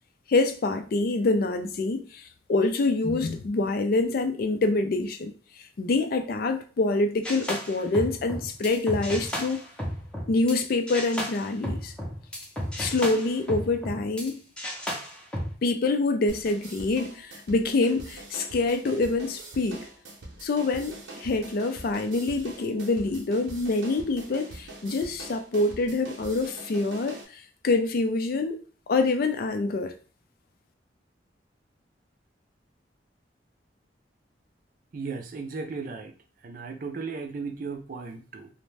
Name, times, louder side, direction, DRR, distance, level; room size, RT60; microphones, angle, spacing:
voice 1, 0.3-5.3 5.8-9.6 10.3-11.9 12.8-14.4 15.6-19.9 20.4-28.6 28.9-29.9, left 3 dB, 55° left, 0.4 m, -26 dB
sound 1, 7.2-10.6 10.9-14.3 14.6-15.5, equal, 5° left, 0.6 m, -33 dB
sound 2, 16.3-27.2, right 2 dB, 90° right, 0.7 m, -43 dB
voice 2, 34.9-36.1 36.4-38.5, right 4 dB, 50° right, 0.4 m, -35 dB
2.5 x 2.1 x 3.2 m
head